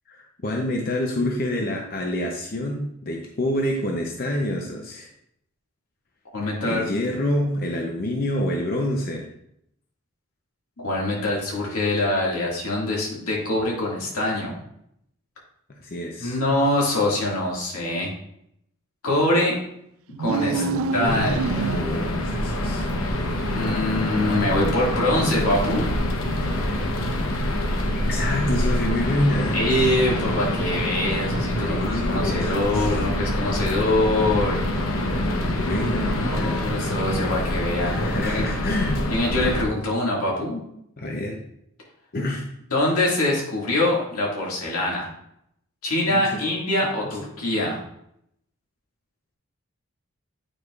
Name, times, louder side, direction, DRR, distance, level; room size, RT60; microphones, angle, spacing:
voice 1, 0.1-5.1 6.4-9.3 15.7-16.4 20.5-21.3 21.7-22.9 28.1-29.6 31.4-33.1 35.5-36.7 37.8-39.1 41.0-41.4 42.1-42.5 46.1-46.4, left 1 dB, 45° left, 1 dB, 0.6 m, -27 dB
voice 2, 6.3-6.8 10.8-14.6 16.2-18.1 19.0-19.6 20.1-20.6 20.9-21.8 23.5-25.8 29.5-34.6 36.2-38.5 39.1-40.6 42.7-45.1 45.8-47.8, left 1 dB, 85° left, -3 dB, 1.9 m, -24 dB
sound 1, 20.1-22.2, right 5 dB, 70° right, 0.3 m, -27 dB
sound 2, 21.0-39.6, left 1 dB, 70° left, 0.9 m, -25 dB
8.8 x 4.7 x 2.4 m, 0.76 s
head